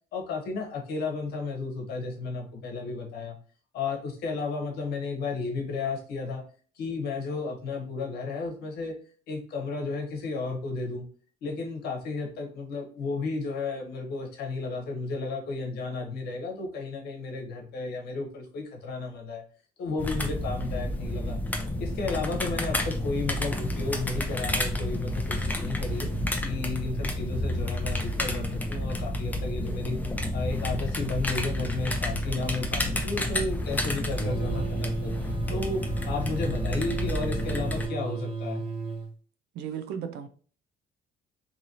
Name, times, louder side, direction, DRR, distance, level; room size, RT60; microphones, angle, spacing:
voice 1, 0.1-3.4 3.7-6.4 6.8-8.9 9.3-11.1 11.4-19.4 19.8-21.4 21.8-26.1 26.4-30.0 30.3-35.2 35.5-38.6, left 3 dB, 70° left, 2 dB, 0.9 m, -33 dB
sound 1, 20.0-37.9, left 1 dB, 10° left, 0.5 m, -30 dB
sound 2, 34.2-39.1, right 4 dB, 30° right, 0.8 m, -34 dB
voice 2, 39.5-40.3, right 8 dB, 80° right, 8 dB, 0.5 m, -35 dB
2.8 x 2.6 x 2.8 m, 0.41 s
cardioid pair, 110°, 17 cm